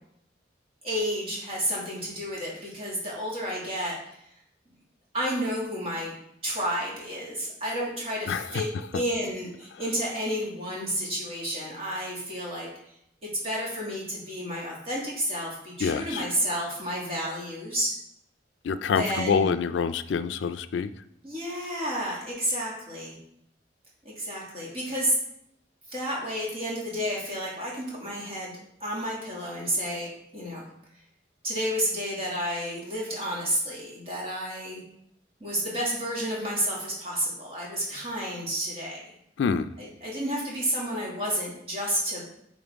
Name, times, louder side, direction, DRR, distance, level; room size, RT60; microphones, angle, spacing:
voice 1, 0.8-4.0 5.1-6.1 6.4-8.7 8.9-12.7 13.2-17.9 19.0-19.5 21.2-23.2 24.0-25.2 25.9-28.5 28.8-30.6 31.4-34.8 35.4-39.1 39.8-42.2, equal, 35° right, -5 dB, 2.1 m, -31 dB
voice 2, 8.3-8.7 8.9-9.0 15.8-16.3 18.6-20.9 39.4-39.7, left 6 dB, 80° left, 12 dB, 0.3 m, -26 dB
8.8 x 4.0 x 3.5 m, 0.76 s
head